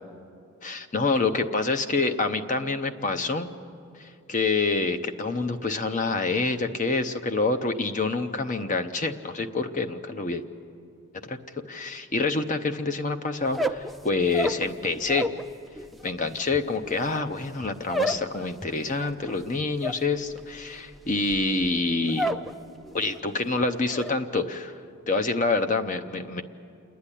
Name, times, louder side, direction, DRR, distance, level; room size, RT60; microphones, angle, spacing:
voice 1, 0.6-3.5 4.0-10.4 11.2-11.4 11.7-15.3 16.0-22.3 22.9-24.8 25.1-26.4, left 3 dB, 35° left, 7 dB, 0.7 m, -27 dB
sound 1, 13.4-15.5 15.7-22.5 22.8-23.3 23.6-24.1, equal, ahead, 0.4 m, -31 dB
28.0 x 10.5 x 10.0 m, 2.5 s
head